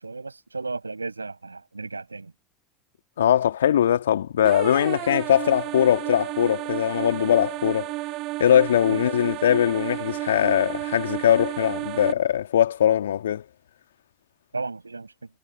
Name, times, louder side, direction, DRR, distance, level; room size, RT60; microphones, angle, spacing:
voice 1, 0.0-2.3 8.9-9.0 14.5-15.1, right 3 dB, 90° right, 7.6 m, -34 dB
voice 2, 3.2-7.9 8.4-13.4, left 10 dB, 75° left, 2.0 m, -21 dB
sound 1, 4.4-12.1, right 19 dB, 50° right, 6.3 m, -32 dB
figure-of-eight pair, 75°, 0 cm